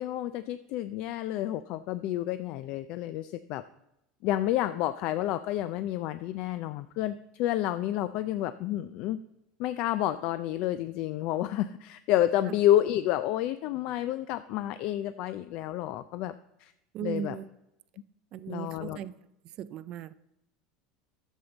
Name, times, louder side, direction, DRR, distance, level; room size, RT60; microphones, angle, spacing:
voice 1, 0.0-3.6 4.2-9.2 9.6-16.3 16.6-16.7 17.0-17.3 18.5-19.0, left 13 dB, 50° left, 0.3 m, -29 dB
voice 2, 16.9-17.5 18.3-19.1 19.4-20.1, right 10 dB, 40° right, 0.3 m, -37 dB
11.0 x 7.3 x 3.9 m
supercardioid pair, 155°, 2 cm